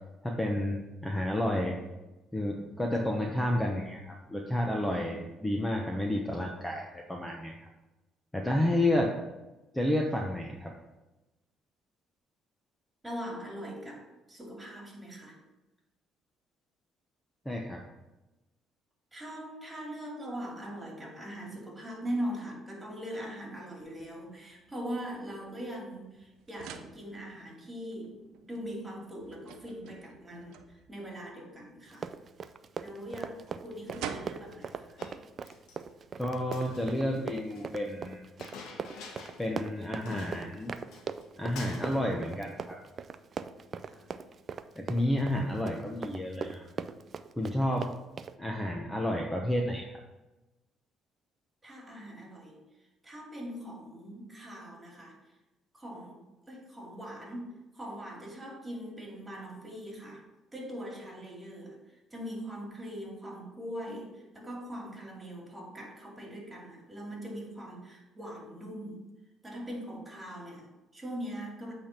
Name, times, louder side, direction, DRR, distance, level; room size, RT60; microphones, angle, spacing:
voice 1, 0.2-1.8 2.3-7.5 8.3-9.1 9.7-10.8 17.4-17.8 36.2-38.2 39.4-40.7 41.4-42.8 44.8-46.6 47.4-47.9 48.4-50.0, left 1 dB, 10° left, 0 dB, 0.9 m, -30 dB
voice 2, 13.0-15.4 19.1-32.1 32.8-35.0 43.8-44.1 51.6-52.6 53.0-55.2 55.7-60.2 60.5-69.0 69.4-71.7, equal, 15° right, 0 dB, 2.5 m, -41 dB
sound 1, 23.8-36.7, right 8 dB, 85° right, 0.6 m, -49 dB
Run, 31.9-48.4, right 6 dB, 45° right, 0.4 m, -40 dB
Chink clink, 35.0-35.8 36.4-37.7 38.4-39.5 39.8-39.9 40.1-41.3 41.5-42.1, left 4 dB, 75° left, 1.1 m, -47 dB
8.3 x 3.5 x 5.8 m, 1.0 s
cardioid pair, 90°, 0 cm